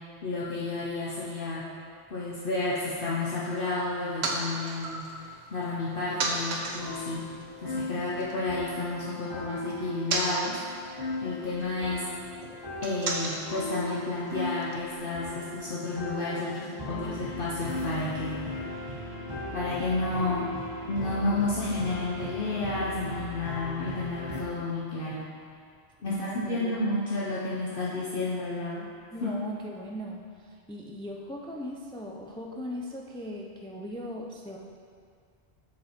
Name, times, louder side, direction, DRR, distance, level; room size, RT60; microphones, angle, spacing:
voice 1, 0.2-1.6 2.1-7.2 7.6-10.6 11.2-12.0 12.8-19.0 19.5-20.5 20.9-25.3 26.0-28.9 29.2-29.3, left 2 dB, 60° left, -6 dB, 1.0 m, -31 dB
sound 1, 3.7-8.3 8.6-14.8, right 3 dB, 90° right, 1.1 m, -37 dB
sound 2, 6.6-24.4, left 2 dB, 20° right, 1.7 m, -38 dB
voice 2, 26.1-26.9 29.1-34.6, equal, 10° left, 0 dB, 0.3 m, -39 dB
7.0 x 6.3 x 4.4 m, 2.2 s
omnidirectional pair, 1.1 m